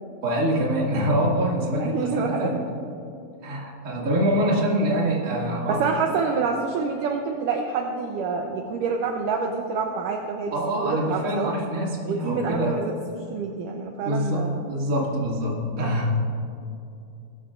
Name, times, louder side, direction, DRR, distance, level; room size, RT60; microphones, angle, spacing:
voice 1, 0.2-2.6 3.4-5.8 10.5-12.7 14.0-16.2, equal, 30° right, -4 dB, 1.8 m, -25 dB
voice 2, 1.8-2.6 5.7-10.6 10.8-11.5 12.1-14.6, right 5 dB, 80° right, 2 dB, 1.9 m, -27 dB
21.0 x 12.5 x 2.5 m, 2.7 s
omnidirectional pair, 4.7 m